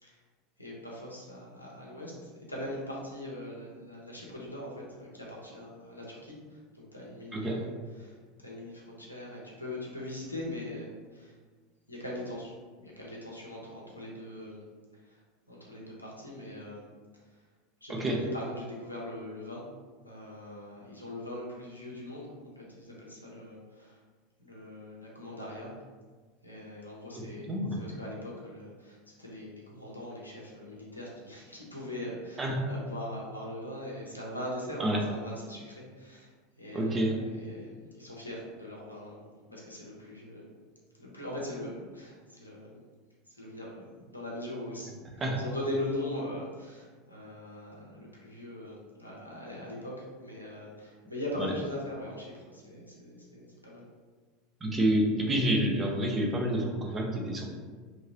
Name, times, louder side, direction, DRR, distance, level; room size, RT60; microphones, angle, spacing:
voice 1, 0.6-11.4 11.9-14.6 15.0-15.2 15.5-16.9 17.8-19.7 20.0-24.0 24.4-25.7 26.4-36.3 36.6-40.5 40.9-42.8 43.3-53.9, left 1 dB, 85° left, -4 dB, 0.7 m, -41 dB
voice 2, 27.2-27.8 32.4-32.6 34.8-35.0 36.7-37.2 45.2-45.4 51.4-51.5 54.6-57.6, right 1 dB, 20° right, 0 dB, 0.6 m, -28 dB
3.0 x 2.7 x 2.8 m, 1.5 s
figure-of-eight pair, 80°, 0 cm